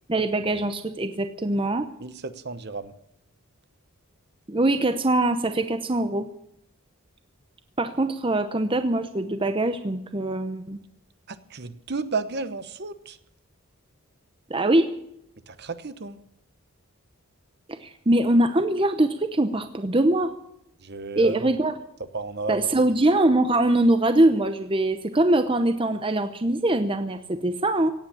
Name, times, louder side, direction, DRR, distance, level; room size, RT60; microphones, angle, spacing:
voice 1, 0.1-1.9 4.5-6.3 7.8-10.8 14.5-14.9 17.7-20.3 21.2-21.7 22.5-27.9, right 1 dB, 25° right, 9 dB, 0.8 m, -22 dB
voice 2, 2.0-2.9 11.3-13.2 15.5-16.2 20.8-21.5 22.1-22.7, right 4 dB, 45° right, 12 dB, 1.0 m, -33 dB
17.5 x 8.8 x 8.6 m, 0.77 s
head